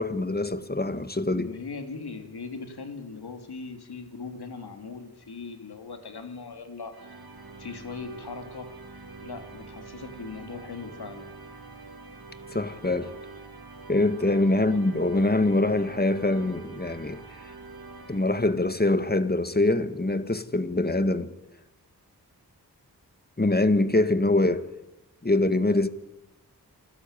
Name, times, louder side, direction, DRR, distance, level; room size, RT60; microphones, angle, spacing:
voice 1, 0.0-1.5 12.5-13.2 13.9-17.2 18.1-21.3 23.4-24.7 25.2-25.9, left 2 dB, 25° left, 1.9 m, -24 dB
voice 2, 1.3-7.2 7.6-8.7 9.2-11.3 14.4-14.8, left 4 dB, 90° left, 3.1 m, -39 dB
sound 1, 6.9-18.9, right 3 dB, 75° right, 4.6 m, -45 dB
27.5 x 15.5 x 9.1 m
cardioid pair, 50°, 38 cm